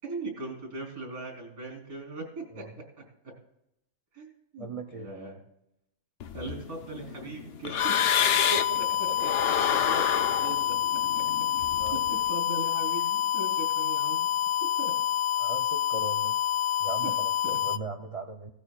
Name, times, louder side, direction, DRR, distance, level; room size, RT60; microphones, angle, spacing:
voice 1, 0.0-2.6 3.0-3.1 4.1-5.4 6.3-8.5 8.8-8.9 9.2-11.2 12.1-14.3 14.8-14.9 17.0-17.1 17.4-17.6, right 2 dB, 80° right, 1 dB, 4.5 m, -40 dB
voice 2, 4.6-5.1 8.5-8.6 9.1-9.2 11.7-12.0 15.4-16.4 16.8-18.5, right 3 dB, 35° right, 4 dB, 0.5 m, -38 dB
sound 1, 6.2-8.8 9.2-12.2, left 8 dB, 60° left, 0.7 m, -29 dB
sound 2, 7.8-17.8, left 11 dB, 85° left, 1.1 m, -27 dB
18.0 x 13.0 x 2.4 m, 0.83 s
omnidirectional pair, 1.5 m